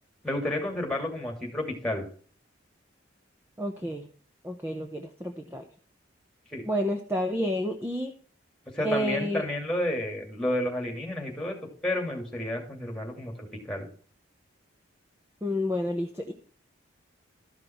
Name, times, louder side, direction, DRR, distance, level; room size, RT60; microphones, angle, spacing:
voice 1, 0.2-2.0 6.5-6.6 8.7-11.6 11.8-13.9, left 1 dB, 5° left, 1 dB, 2.6 m, -31 dB
voice 2, 3.6-4.1 4.4-5.6 6.6-8.1 8.8-9.5 15.4-16.3, equal, 10° right, 4 dB, 0.9 m, -30 dB
13.0 x 6.1 x 4.4 m, 0.43 s
head